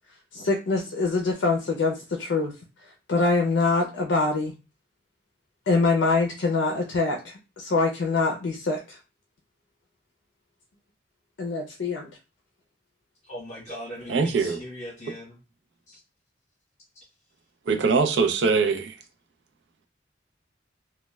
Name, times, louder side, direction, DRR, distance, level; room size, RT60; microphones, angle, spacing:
voice 1, 0.3-2.5 3.1-4.5 5.7-9.0 11.4-12.1, left 3 dB, 75° left, 0.5 m, -24 dB
voice 2, 13.3-15.4 15.9-16.0, equal, 40° left, 1.1 m, -39 dB
voice 3, 14.1-14.6 17.7-19.0, right 4 dB, 70° right, 0.5 m, -22 dB
3.0 x 2.2 x 2.2 m
head